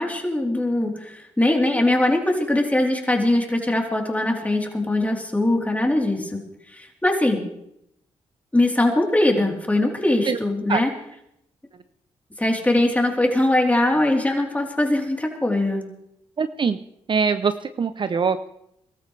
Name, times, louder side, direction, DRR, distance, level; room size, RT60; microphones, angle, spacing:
voice 1, 0.0-6.4 6.7-7.5 8.5-10.9 12.4-15.9, left 1 dB, 10° left, 0 dB, 3.7 m, -21 dB
voice 2, 16.4-16.8 17.1-18.5, right 5 dB, 45° right, 11 dB, 0.7 m, -23 dB
23.5 x 13.0 x 3.4 m, 0.78 s
cardioid pair, 70°, 12 cm